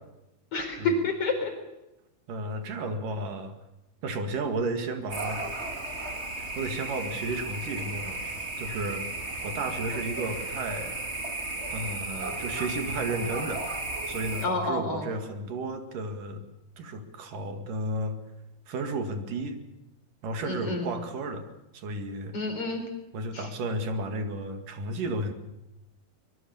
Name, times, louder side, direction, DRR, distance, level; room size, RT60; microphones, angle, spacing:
voice 1, 0.5-1.5 14.4-15.0 20.5-20.9 22.3-22.8 23.3-23.5, left 2 dB, 45° left, 5 dB, 5.0 m, -29 dB
voice 2, 2.3-3.6 4.0-5.5 6.4-9.1 9.4-11.0 11.7-13.7 14.1-16.4 16.8-18.2 18.7-19.6 20.2-21.5 21.7-22.4 23.1-25.3, right 2 dB, 75° right, 6 dB, 3.7 m, -33 dB
sound 1, 5.1-14.5, right 2 dB, 20° right, 2.5 m, -34 dB
24.5 x 21.5 x 7.1 m, 0.93 s
omnidirectional pair, 3.9 m